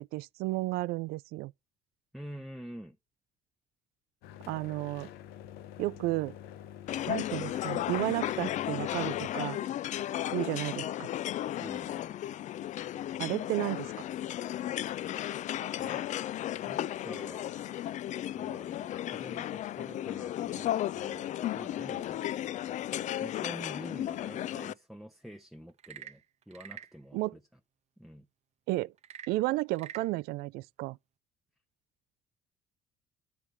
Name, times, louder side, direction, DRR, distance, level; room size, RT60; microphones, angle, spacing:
voice 1, 0.0-1.5 4.5-5.1 5.8-6.4 7.1-9.6 10.3-11.1 13.2-13.9 27.1-27.4 28.7-28.9 29.3-31.0, right 19 dB, 85° right, 0.4 m, -32 dB
voice 2, 2.1-3.0 11.6-12.2 15.7-16.1 16.6-17.5 18.4-22.2 23.2-27.4 28.0-28.3, equal, ahead, 0.7 m, -47 dB
sound 1, 4.2-9.3, left 11 dB, 90° left, 0.7 m, -47 dB
sound 2, 6.9-24.7, left 12 dB, 50° left, 0.4 m, -34 dB
Frog / Percussion / Wood, 25.7-27.0 29.0-30.1, right 9 dB, 45° right, 0.7 m, -46 dB
10.0 x 3.5 x 6.1 m
cardioid pair, 105°, 16 cm